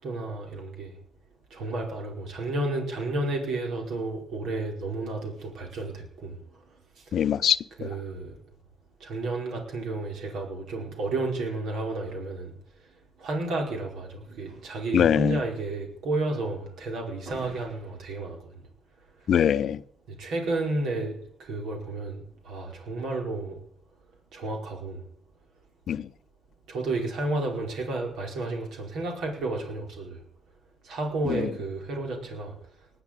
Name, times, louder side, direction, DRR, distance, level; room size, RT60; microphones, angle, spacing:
voice 1, 0.0-0.9 1.5-6.4 7.8-8.4 9.0-12.5 13.2-18.4 20.1-23.6 24.3-25.0 26.7-30.2 30.8-32.6, right 2 dB, 80° right, 4.9 m, -31 dB
voice 2, 7.1-7.9 14.9-15.4 19.3-19.8 25.9-26.1 31.3-31.5, left 9 dB, 65° left, 0.7 m, -23 dB
19.5 x 7.0 x 9.0 m
cardioid pair, 90°, 0 cm